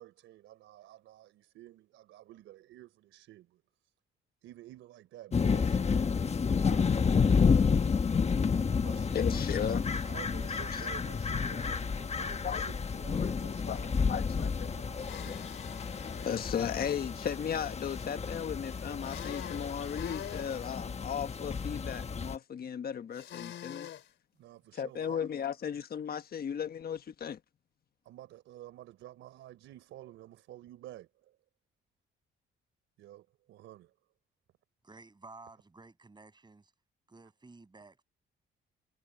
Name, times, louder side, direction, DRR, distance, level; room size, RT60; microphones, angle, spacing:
voice 1, 0.0-3.9 4.4-7.3 8.8-15.5 17.0-17.3 24.4-25.3 28.0-31.4 33.0-33.9, right 14 dB, 85° right, 4.1 m, -51 dB
sound 1, 5.3-22.4, left 5 dB, 35° left, 1.2 m, -30 dB
voice 2, 9.1-9.8 12.4-12.6 13.2-13.3 13.7-14.7 16.0-23.9 24.8-27.4, left 8 dB, 50° left, 1.3 m, -36 dB
sound 2, 15.0-16.5 19.0-20.5 23.1-24.1, left 10 dB, 70° left, 3.9 m, -45 dB
voice 3, 34.8-36.7 37.1-38.0, right 3 dB, 20° right, 6.3 m, -53 dB
cardioid pair, 90°, 20 cm